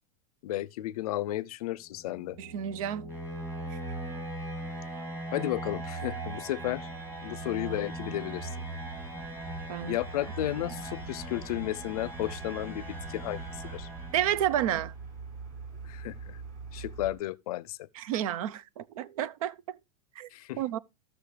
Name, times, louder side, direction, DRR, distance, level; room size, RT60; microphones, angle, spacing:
voice 1, 0.4-2.4 5.3-6.9 7.2-8.6 9.9-13.9 15.8-16.4 16.7-17.8 20.3-20.6, left 15 dB, 80° left, 0.5 m, -33 dB
sound 1, 1.9-14.7, right 1 dB, 10° right, 2.5 m, -39 dB
voice 2, 2.4-3.2 3.7-3.8 9.7-10.0 14.1-14.9 17.9-19.8 20.2-20.3 20.6-20.8, right 11 dB, 70° right, 0.6 m, -31 dB
sound 2, 6.4-17.1, right 5 dB, 40° right, 4.8 m, -46 dB
14.5 x 6.2 x 3.3 m
supercardioid pair, 155°, 19 cm